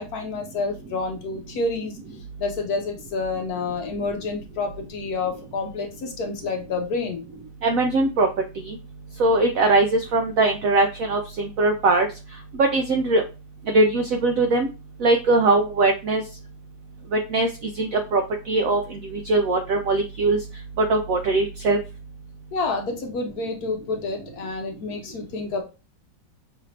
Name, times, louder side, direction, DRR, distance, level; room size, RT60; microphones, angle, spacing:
voice 1, 0.0-2.0 2.4-7.2 22.5-25.6, left 3 dB, 65° left, 3 dB, 1.1 m, -29 dB
voice 2, 7.6-8.3 8.7-8.8 9.2-12.1 12.5-13.2 13.7-14.7 15.0-16.2 17.1-17.5 17.8-18.2 18.5-19.0 19.3-20.4 20.8-21.8, right 2 dB, 75° right, 4 dB, 0.7 m, -20 dB
5.7 x 2.6 x 3.1 m, 0.30 s
omnidirectional pair, 2.0 m